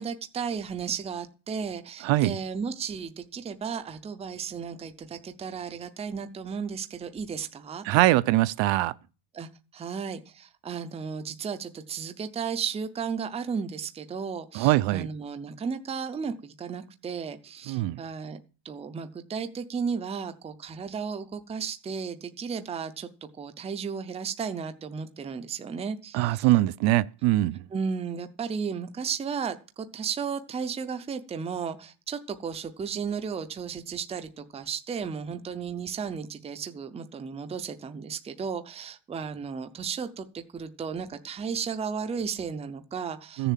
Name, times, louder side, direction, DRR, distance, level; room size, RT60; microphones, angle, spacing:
voice 1, 0.0-7.8 9.3-18.4 18.6-26.5 27.7-43.5, right 6 dB, 15° right, 0.6 m, -34 dB
voice 2, 2.0-2.4 7.8-8.9 14.5-15.1 17.7-18.0 26.1-27.6 43.4-43.5, right 16 dB, 65° right, 0.7 m, -23 dB
15.0 x 7.0 x 7.4 m
cardioid pair, 180°, 49 cm